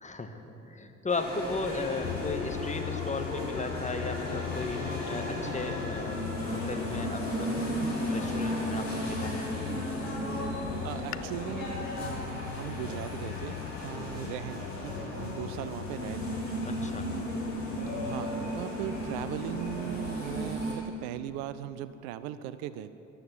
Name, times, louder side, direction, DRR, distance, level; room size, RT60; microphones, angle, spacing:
voice 1, 0.0-9.3 13.9-14.1 16.7-17.1, left 3 dB, 20° left, 6 dB, 1.5 m, -36 dB
sound 1, 1.1-20.7, equal, 90° left, 2.9 m, -35 dB
sound 2, 2.0-20.7, left 13 dB, 50° left, 0.5 m, -40 dB
voice 2, 10.8-16.4 17.9-22.9, right 12 dB, 65° right, 14 dB, 0.6 m, -39 dB
14.0 x 11.5 x 7.3 m, 2.9 s
figure-of-eight pair, 45°, 38 cm